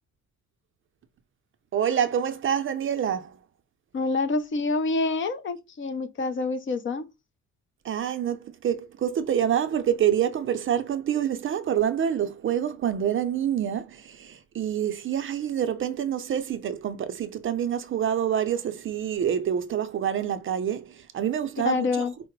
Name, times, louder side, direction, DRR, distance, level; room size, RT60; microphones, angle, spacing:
voice 1, 1.7-3.3 7.8-20.8 21.1-21.9, right 9 dB, 45° right, 0.5 m, -26 dB
voice 2, 3.9-7.1 21.6-22.1, left 3 dB, 40° left, 0.7 m, -27 dB
4.7 x 2.1 x 4.5 m
cardioid pair, 150°, 30 cm